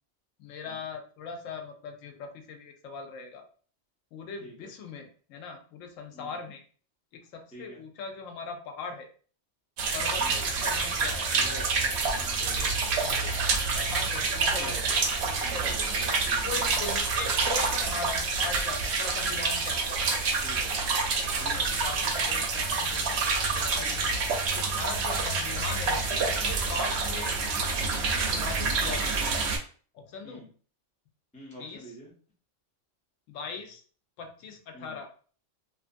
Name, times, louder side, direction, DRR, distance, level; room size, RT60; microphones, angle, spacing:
voice 1, 0.4-3.5 4.1-6.6 7.1-9.1 9.9-11.3 12.6-14.9 15.5-15.8 16.4-20.1 21.0-24.1 24.5-27.4 28.3-29.3 29.9-30.5 31.6-31.9 33.3-33.8 34.2-35.1, left 5 dB, 85° left, 5 dB, 1.0 m, -40 dB
sound 1, 9.8-29.6, right 4 dB, 65° right, 0.8 m, -28 dB
voice 2, 11.3-11.8 12.1-12.8 14.3-16.6 20.4-20.7 21.4-21.7 23.8-24.1 30.2-30.5 31.3-32.1 34.7-35.0, right 1 dB, 10° left, -3 dB, 0.4 m, -46 dB
2.5 x 2.4 x 2.5 m, 0.42 s
omnidirectional pair, 1.3 m